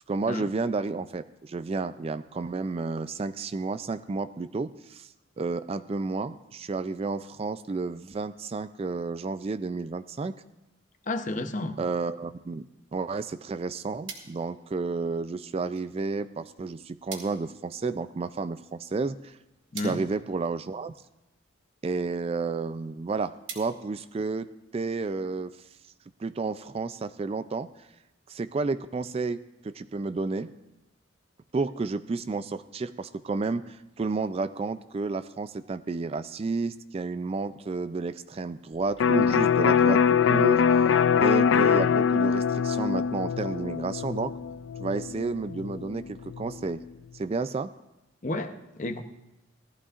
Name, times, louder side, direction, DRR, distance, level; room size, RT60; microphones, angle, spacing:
voice 1, 0.1-10.4 11.8-12.6 12.9-19.4 19.8-20.9 21.8-25.6 26.2-27.9 28.3-30.5 31.5-40.6 41.2-44.3 44.8-46.8 47.1-47.7, right 3 dB, 30° right, 0.3 m, -31 dB
voice 2, 11.1-11.8 19.7-20.0 48.2-49.0, left 2 dB, 40° left, 0.7 m, -31 dB
sound 1, 14.1-24.8, right 6 dB, 70° right, 2.4 m, -49 dB
Electric guitar, 39.0-46.6, left 7 dB, 70° left, 0.4 m, -23 dB
19.0 x 13.5 x 2.5 m
head